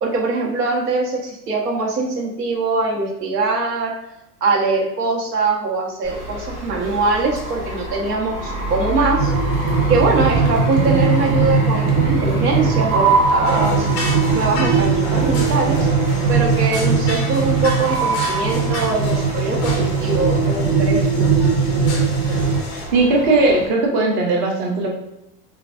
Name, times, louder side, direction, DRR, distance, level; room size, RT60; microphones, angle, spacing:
voice 1, 0.0-3.9 4.4-9.3 9.9-13.9 14.3-15.9 16.3-21.3, right 3 dB, 80° right, -1 dB, 1.4 m, -22 dB
sound 1, 6.0-23.7, equal, 15° right, 1.1 m, -30 dB
sound 2, 9.2-22.6, right 4 dB, 65° right, 1.1 m, -19 dB
sound 3, 13.5-22.9, left 2 dB, 20° left, 0.4 m, -31 dB
voice 2, 22.9-24.9, right 2 dB, 30° right, -1 dB, 0.7 m, -17 dB
6.8 x 2.5 x 2.5 m, 0.88 s
supercardioid pair, 170°, 47 cm